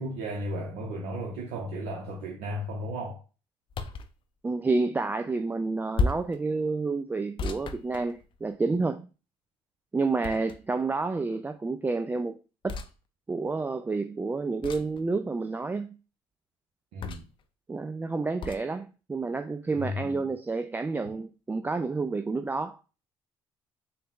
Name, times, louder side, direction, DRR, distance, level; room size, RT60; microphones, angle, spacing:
voice 1, 0.0-3.2 16.9-17.3 19.7-20.2, equal, 75° right, 0.7 m, -34 dB
sound 1, 3.7-4.1 5.9-6.4 7.4-8.6 10.2-10.8 12.7-12.9 14.6-15.0 17.0-17.4 18.4-18.6, left 3 dB, 50° left, 0.5 m, -32 dB
voice 2, 4.4-9.0 9.9-12.3 12.6-12.8 13.3-15.9 17.7-22.8, right 3 dB, 20° right, 0.3 m, -29 dB
3.9 x 2.1 x 3.6 m
supercardioid pair, 70°, 11 cm